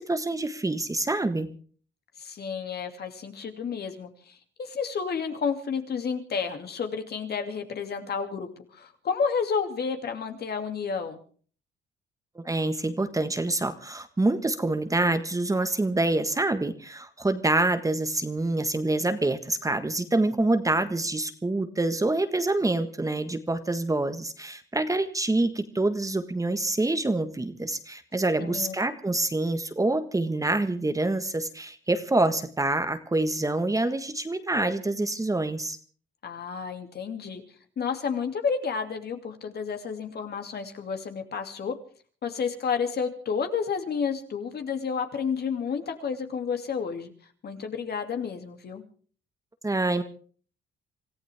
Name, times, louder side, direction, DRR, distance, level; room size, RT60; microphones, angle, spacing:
voice 1, 0.0-1.5 12.3-35.8 49.6-50.0, right 2 dB, 15° right, 9 dB, 1.5 m, -26 dB
voice 2, 2.2-11.2 28.4-28.7 36.2-37.4 37.8-41.7 42.2-47.1 47.4-48.8, left 6 dB, 55° left, 5 dB, 2.7 m, -31 dB
26.5 x 15.0 x 3.6 m, 0.44 s
cardioid pair, 90°, 20 cm